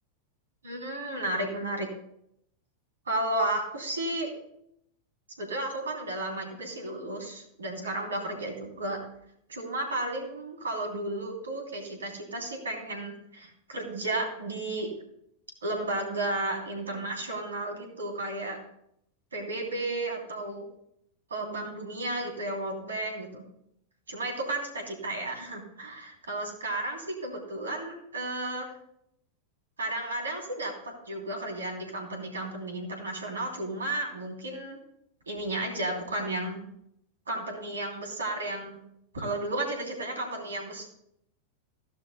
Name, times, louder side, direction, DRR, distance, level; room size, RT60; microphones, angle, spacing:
voice 1, 0.6-1.9 3.1-4.4 5.4-9.0 9.5-14.9 15.6-18.6 19.3-20.6 21.3-23.4 24.1-28.7 29.8-34.8 35.3-36.6 37.3-38.8 39.1-40.8, right 2 dB, 70° right, 2 dB, 3.0 m, -33 dB
15.5 x 12.0 x 2.2 m, 0.73 s
figure-of-eight pair, 90°, 0 cm